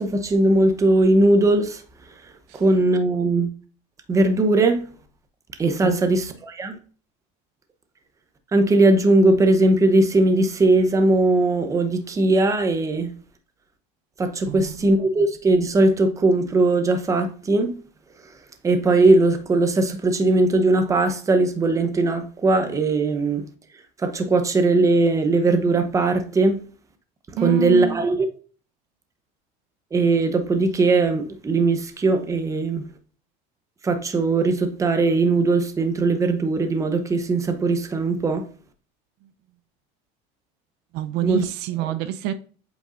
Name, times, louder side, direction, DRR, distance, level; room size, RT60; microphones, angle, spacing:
voice 1, 0.0-1.8 2.5-3.5 4.1-4.8 5.6-6.8 8.5-13.1 14.2-17.7 18.6-23.4 24.0-26.6 27.4-28.3 29.9-32.9 33.8-38.5 41.2-41.5 41.8-41.9, right 2 dB, 20° right, 0.8 m, -19 dB
voice 2, 27.3-28.0 40.9-42.3, right 8 dB, 75° right, 0.6 m, -26 dB
8.0 x 5.1 x 2.5 m
cardioid pair, 145°, 18 cm